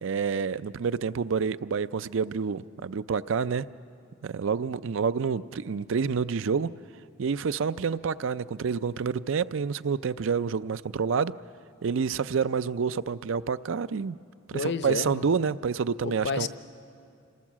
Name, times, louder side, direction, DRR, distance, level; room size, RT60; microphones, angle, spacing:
voice 1, 0.0-3.7 4.2-6.7 7.2-11.3 11.8-14.2 14.5-16.5, right 5 dB, 65° right, 15 dB, 0.5 m, -28 dB
voice 2, 14.5-15.3 16.0-16.5, left 4 dB, 55° left, 11 dB, 0.7 m, -30 dB
26.5 x 18.5 x 7.4 m, 2.4 s
head